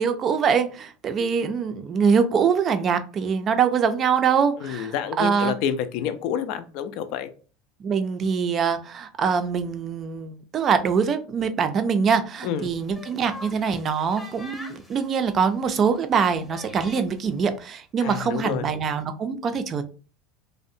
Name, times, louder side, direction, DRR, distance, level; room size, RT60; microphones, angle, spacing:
voice 1, 0.0-5.5 7.8-19.8, right 6 dB, 35° right, 10 dB, 0.4 m, -23 dB
voice 2, 4.6-7.3 12.4-12.8 18.0-18.7, left 9 dB, 65° left, 11 dB, 0.3 m, -28 dB
sound 1, 12.8-17.3, left 1 dB, 5° left, 0.8 m, -44 dB
2.6 x 2.0 x 2.6 m, 0.38 s
supercardioid pair, 115°, 0 cm